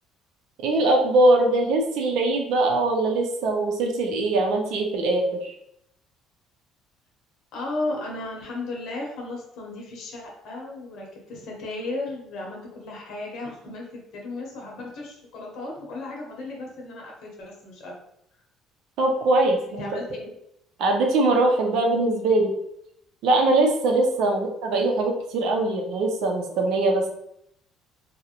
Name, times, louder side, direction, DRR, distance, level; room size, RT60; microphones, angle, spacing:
voice 1, 0.6-5.5 19.0-20.0 20.8-22.5 23.2-27.1, right 2 dB, 75° right, 2 dB, 0.5 m, -22 dB
voice 2, 7.5-17.9 19.7-20.3, left 2 dB, 70° left, -1 dB, 0.7 m, -35 dB
2.4 x 2.0 x 2.9 m, 0.74 s
cardioid pair, 100°, 0 cm